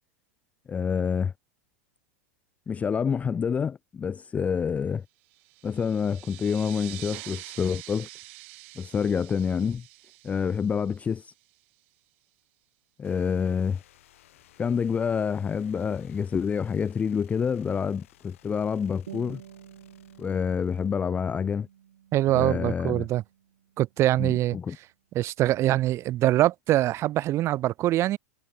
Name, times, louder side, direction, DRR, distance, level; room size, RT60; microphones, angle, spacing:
voice 1, 0.7-1.3 2.7-5.0 5.6-8.1 8.8-9.8 10.2-11.3 13.0-13.8 14.6-19.4 20.2-21.7 22.3-23.1 24.2-24.8, left 6 dB, 20° left, 0.5 m, -27 dB
sound 1, 5.3-11.5, right 24 dB, 60° right, 2.4 m, -46 dB
sound 2, 13.0-21.8, left 14 dB, 70° left, 5.3 m, -59 dB
sound 3, 19.1-24.1, right 10 dB, 80° right, 6.4 m, -49 dB
voice 2, 22.1-23.2 23.8-24.6 25.1-28.2, right 14 dB, 40° right, 1.2 m, -23 dB
hypercardioid pair, 105°, 7 cm